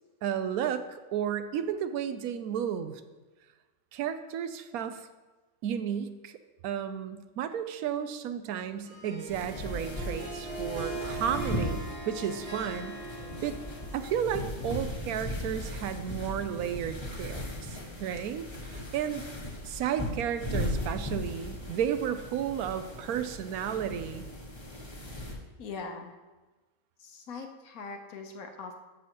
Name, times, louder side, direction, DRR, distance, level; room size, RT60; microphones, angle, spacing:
voice 1, 0.2-3.0 3.9-5.1 5.6-6.4 6.6-13.0 13.4-13.6 13.9-19.2 19.6-24.3, right 9 dB, 80° right, 10 dB, 1.1 m, -33 dB
Harp, 8.9-14.6, right 2 dB, 50° right, 3.2 m, -40 dB
sound 1, 9.3-25.3, left 1 dB, 20° left, 1.2 m, -37 dB
voice 2, 25.6-26.2 27.0-28.7, left 4 dB, 75° left, 4 dB, 1.4 m, -41 dB
13.5 x 6.4 x 2.9 m, 1.2 s
omnidirectional pair, 1.5 m